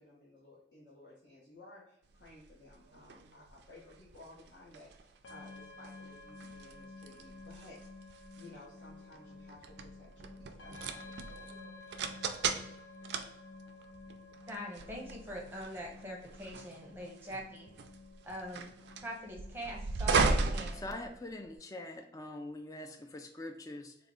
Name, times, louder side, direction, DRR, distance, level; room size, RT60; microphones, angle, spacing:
voice 1, 0.0-11.6, left 2 dB, 65° left, -7 dB, 0.9 m, -56 dB
sound 1, 2.2-21.6, right 4 dB, 65° right, 0.3 m, -38 dB
sound 2, 5.2-21.0, left 3 dB, 85° left, 0.5 m, -52 dB
voice 2, 14.5-17.7 18.2-18.7 19.0-20.9, equal, 10° right, -1 dB, 0.7 m, -43 dB
voice 3, 20.7-24.0, left 1 dB, 20° left, 5 dB, 0.3 m, -43 dB
3.6 x 2.1 x 3.5 m, 0.79 s
head